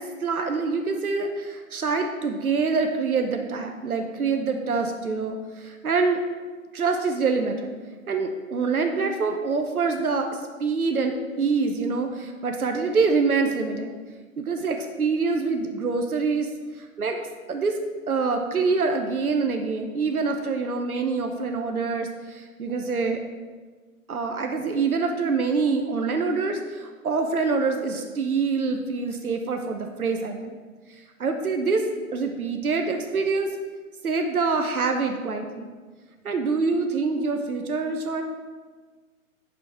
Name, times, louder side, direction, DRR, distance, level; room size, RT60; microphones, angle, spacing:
voice 1, 0.0-6.2 6.7-7.7 8.1-13.9 14.4-16.5 16.8-17.2 17.5-17.8 18.1-23.2 24.1-30.6 30.9-31.9 32.1-33.6 34.0-35.7 36.2-38.2, right 4 dB, 85° right, 4 dB, 0.9 m, -25 dB
6.0 x 5.9 x 4.7 m, 1.4 s
figure-of-eight pair, 135°, 42 cm